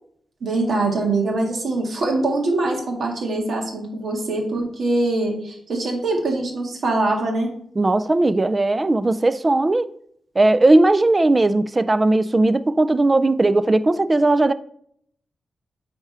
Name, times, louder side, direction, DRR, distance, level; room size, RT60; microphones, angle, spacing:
voice 1, 0.4-7.5, right 2 dB, 70° right, 1.8 m, -23 dB
voice 2, 7.8-9.9 10.4-14.5, right 2 dB, 25° right, 0.3 m, -17 dB
8.9 x 3.6 x 4.3 m
wide cardioid pair, 110°, 0 cm